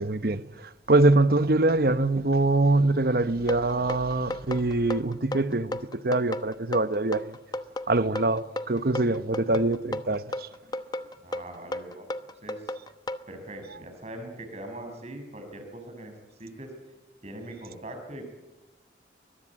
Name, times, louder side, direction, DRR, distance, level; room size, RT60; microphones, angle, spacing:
voice 1, 0.0-7.4 7.9-10.5, right 2 dB, 55° right, 1.0 m, -24 dB
sound 1, 3.5-13.2, left 1 dB, 20° left, 0.9 m, -33 dB
voice 2, 11.2-12.8 13.3-16.1 16.4-16.7 17.2-18.3, right 1 dB, 35° right, 6.3 m, -41 dB
23.5 x 21.5 x 8.7 m
head